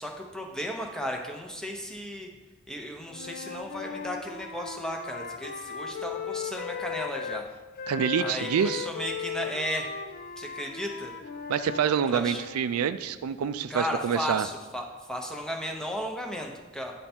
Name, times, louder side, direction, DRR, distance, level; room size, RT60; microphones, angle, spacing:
voice 1, 0.0-2.3 2.7-7.5 8.2-9.9 10.4-11.1 12.1-12.4 13.7-16.9, equal, 5° left, 1 dB, 0.7 m, -35 dB
Wind instrument woodwind instrument, 3.1-7.4 7.8-12.6, left 6 dB, 45° left, 0.4 m, -37 dB
voice 2, 7.9-8.9 11.5-14.5, right 8 dB, 90° right, 12 dB, 0.3 m, -27 dB
9.9 x 3.4 x 4.3 m, 1.2 s
head